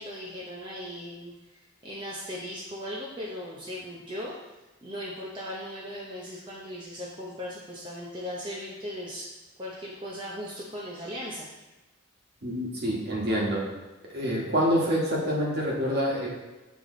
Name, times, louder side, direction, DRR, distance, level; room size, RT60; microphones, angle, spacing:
voice 1, 0.0-4.4 4.8-9.3 9.6-11.5, equal, 25° right, -5 dB, 0.7 m, -38 dB
voice 2, 12.4-13.6 14.1-16.3, equal, 55° right, -3 dB, 1.5 m, -26 dB
8.2 x 3.3 x 3.8 m, 1.1 s
head